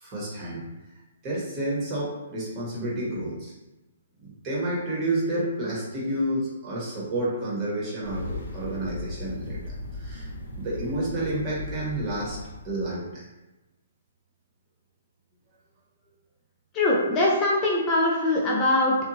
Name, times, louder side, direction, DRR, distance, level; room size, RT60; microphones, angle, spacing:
voice 1, 0.0-0.6 1.2-3.5 4.2-9.6 10.0-10.3 10.6-12.4 12.6-13.2, right 1 dB, 25° right, -6 dB, 0.9 m, -30 dB
sound 1, 8.0-13.0, left 2 dB, 80° left, 0.7 m, -37 dB
voice 2, 16.7-19.0, left 2 dB, 20° left, -4 dB, 0.4 m, -22 dB
2.8 x 2.1 x 2.7 m, 1.0 s
hypercardioid pair, 150°, 0 cm